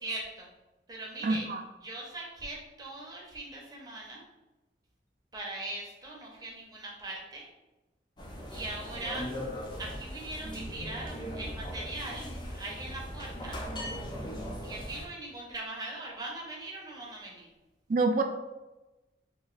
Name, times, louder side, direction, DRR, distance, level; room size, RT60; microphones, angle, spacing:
voice 1, 0.0-0.5 0.9-1.5 1.8-4.2 5.3-7.5 8.5-9.3 9.8-13.6 14.6-17.5, right 2 dB, 20° right, -3 dB, 0.7 m, -40 dB
voice 2, 1.2-1.6 17.9-18.2, right 3 dB, 45° right, 5 dB, 0.3 m, -26 dB
sound 1, 8.2-15.1, equal, 25° left, 0.4 m, -39 dB
2.9 x 2.4 x 3.9 m, 1.1 s
head